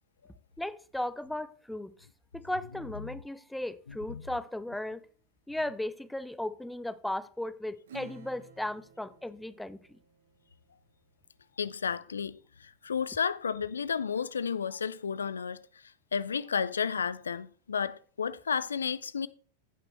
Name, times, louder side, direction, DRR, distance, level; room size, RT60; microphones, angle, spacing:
voice 1, 0.6-1.9 2.3-5.0 5.5-10.0, left 1 dB, 5° left, 0.5 m, -36 dB
Acoustic guitar / Strum, 7.8-10.8, right 4 dB, 60° right, 1.3 m, -52 dB
voice 2, 11.6-15.6 16.1-19.3, left 6 dB, 70° left, 0.4 m, -32 dB
15.0 x 5.9 x 3.2 m
figure-of-eight pair, 90°, 0 cm